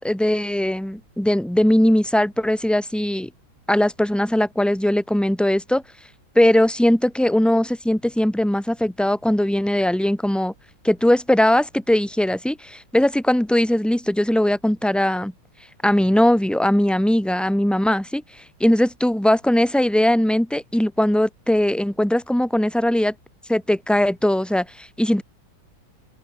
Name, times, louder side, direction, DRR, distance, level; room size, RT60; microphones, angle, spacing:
voice 1, 0.0-3.3 3.7-5.8 6.3-10.5 10.8-15.3 15.8-18.2 18.6-23.1 23.5-25.2, left 1 dB, ahead, 2.4 m, -20 dB
open air
omnidirectional pair, 2.2 m